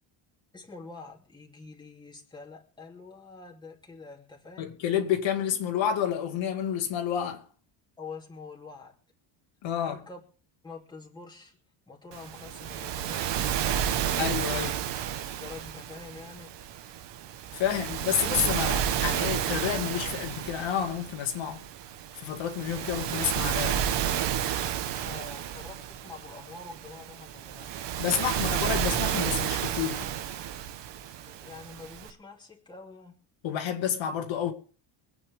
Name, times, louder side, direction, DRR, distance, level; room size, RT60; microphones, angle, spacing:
voice 1, 0.5-4.8 8.0-9.0 9.8-10.2 10.6-11.6 11.9-13.5 15.4-16.5 24.9-27.7 31.2-33.2, left 4 dB, 10° left, 2.9 m, -46 dB
voice 2, 4.6-7.4 9.6-10.0 14.2-14.8 17.5-21.6 22.1-23.8 28.0-30.1 33.4-34.5, left 9 dB, 65° left, 2.3 m, -29 dB
Waves surf, 12.1-32.1, right 10 dB, 55° right, 1.4 m, -31 dB
24.5 x 8.9 x 3.6 m
cardioid pair, 160°, 50 cm